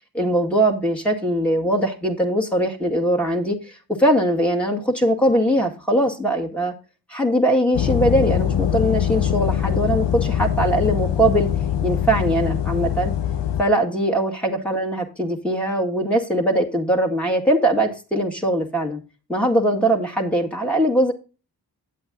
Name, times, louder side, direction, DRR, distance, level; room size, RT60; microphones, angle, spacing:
voice 1, 0.1-6.7 7.1-11.5 11.8-13.1 13.6-19.0 19.3-21.1, right 1 dB, 5° left, 1 dB, 1.9 m, -21 dB
sound 1, 7.7-13.6, left 10 dB, 85° left, 0.7 m, -23 dB
9.4 x 7.8 x 3.7 m, 0.33 s
cardioid pair, 45°, 42 cm